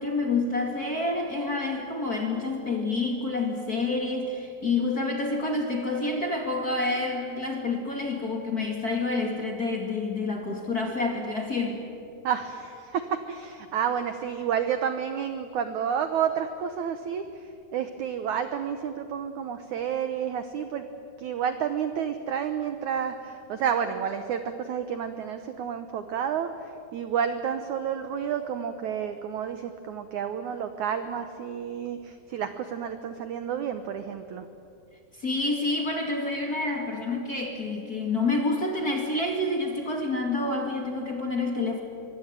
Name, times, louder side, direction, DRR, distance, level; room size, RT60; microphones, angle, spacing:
voice 1, 0.0-11.8 35.2-41.8, left 3 dB, 30° left, 2 dB, 1.9 m, -28 dB
voice 2, 12.2-17.2 17.7-20.9 21.2-34.4, right 8 dB, 80° right, 9 dB, 1.7 m, -30 dB
24.5 x 23.5 x 9.1 m, 2.6 s
omnidirectional pair, 4.9 m